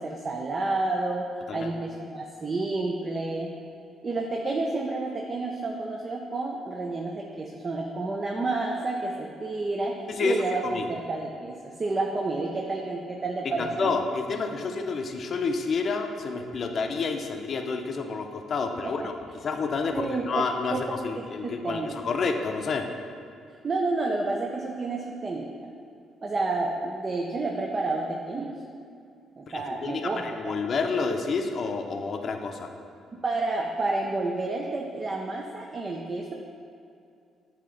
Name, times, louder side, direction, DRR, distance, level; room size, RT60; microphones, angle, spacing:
voice 1, 0.0-3.5 4.0-9.9 10.2-13.9 19.9-20.4 20.7-20.8 21.4-22.0 23.6-25.5 26.2-28.5 29.4-30.5 33.2-36.3, right 2 dB, 35° right, 0 dB, 0.5 m, -30 dB
voice 2, 10.1-10.9 13.4-19.1 19.4-22.8 29.5-32.7, left 4 dB, 50° left, 4 dB, 0.5 m, -29 dB
8.5 x 2.8 x 3.8 m, 2.5 s
cardioid pair, 80°, 0 cm